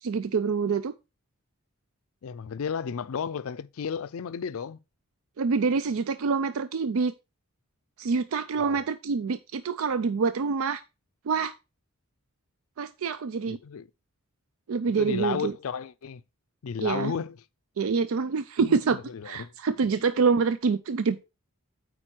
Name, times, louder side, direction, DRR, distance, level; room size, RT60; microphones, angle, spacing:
voice 1, 0.0-0.9 5.4-7.1 8.0-10.8 11.3-11.5 12.8-13.6 14.7-15.5 16.8-17.1 17.8-19.0 19.3-21.2, right 5 dB, 65° right, 0.4 m, -26 dB
voice 2, 2.2-4.8 8.6-8.9 13.5-13.9 15.0-16.2 16.6-17.4 18.6-19.5 19.9-20.0, left 6 dB, 65° left, 0.4 m, -33 dB
9.0 x 4.2 x 4.4 m
head